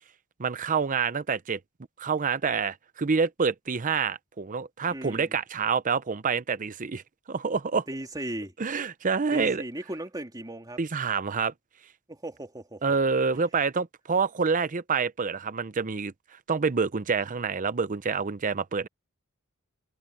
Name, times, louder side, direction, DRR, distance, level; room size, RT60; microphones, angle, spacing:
voice 1, 0.4-1.6 2.0-7.0 7.3-7.8 8.6-9.6 10.8-11.5 12.8-16.1 16.5-18.9, right 5 dB, 35° right, 0.6 m, -27 dB
voice 2, 4.9-5.3 7.9-8.5 9.3-10.8 12.1-12.8, right 1 dB, 20° right, 3.0 m, -37 dB
head